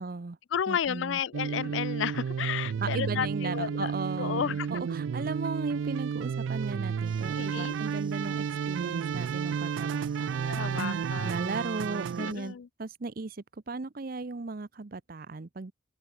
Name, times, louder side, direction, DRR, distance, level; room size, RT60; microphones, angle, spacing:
voice 1, 0.0-0.4 0.7-1.2 2.8-10.8 11.1-15.7, right 3 dB, 50° right, 0.7 m, -37 dB
voice 2, 0.5-3.9 4.2-4.7 7.4-7.8 10.5-11.3 12.2-12.7, left 8 dB, 80° left, 0.4 m, -32 dB
sound 1, 1.3-12.3, right 7 dB, 80° right, 0.3 m, -32 dB
sound 2, 7.0-12.5, right 6 dB, 25° right, 2.1 m, -56 dB
open air
head